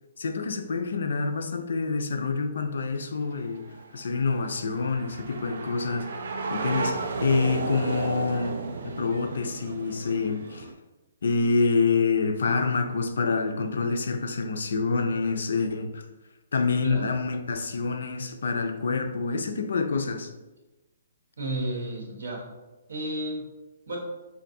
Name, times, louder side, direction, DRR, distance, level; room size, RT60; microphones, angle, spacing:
voice 1, 0.2-3.7 3.9-6.2 6.5-8.6 8.8-10.7 11.2-16.0 16.5-20.3, left 4 dB, 65° left, 0.4 m, -27 dB
sound 1, 3.0-10.7, right 4 dB, 55° right, 0.3 m, -34 dB
voice 2, 21.4-22.4 22.9-23.5 23.9-24.0, right 1 dB, 70° right, 1.1 m, -32 dB
4.2 x 2.5 x 2.6 m
hypercardioid pair, 180°, 0 cm